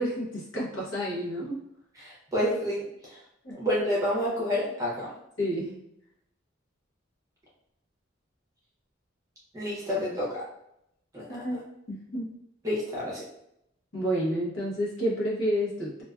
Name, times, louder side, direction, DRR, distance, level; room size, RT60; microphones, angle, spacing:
voice 1, 0.0-1.6 3.4-3.6 5.4-5.8 11.3-11.6 11.9-12.3 13.9-16.0, equal, 65° left, -4 dB, 0.8 m, -30 dB
voice 2, 2.0-2.8 3.1-3.2 3.6-5.1 9.5-10.4 11.1-11.2 12.6-13.2, left 1 dB, 15° right, -5 dB, 0.6 m, -29 dB
2.3 x 2.3 x 2.2 m, 0.79 s
head